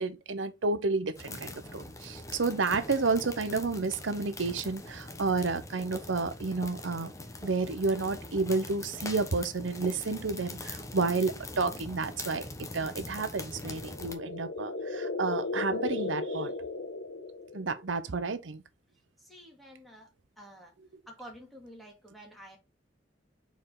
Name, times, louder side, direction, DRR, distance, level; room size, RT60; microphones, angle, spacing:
voice 1, 0.0-7.1 7.4-12.5 12.7-16.5 17.5-18.6, right 3 dB, 85° right, 0.8 m, -31 dB
sound 1, 1.2-14.1, left 2 dB, 15° left, 1.1 m, -43 dB
sound 2, 13.6-17.8, left 3 dB, 75° left, 1.3 m, -35 dB
voice 2, 19.2-20.1 20.4-20.7 21.1-22.6, equal, ahead, 2.5 m, -49 dB
6.8 x 4.7 x 3.8 m
head